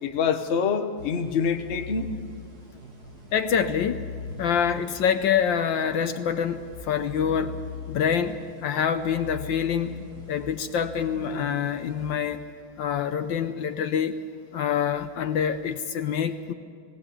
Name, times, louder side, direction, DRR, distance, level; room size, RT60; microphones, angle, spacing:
voice 1, 0.0-2.1, left 6 dB, 40° left, 7 dB, 1.1 m, -26 dB
sound 1, 1.0-12.8, left 5 dB, 50° right, 2.0 m, -41 dB
voice 2, 3.3-4.1 4.4-10.0 10.3-12.5 12.8-14.2 14.5-16.5, left 7 dB, 70° left, 9 dB, 1.4 m, -26 dB
18.5 x 18.5 x 8.5 m, 2.2 s
omnidirectional pair, 2.2 m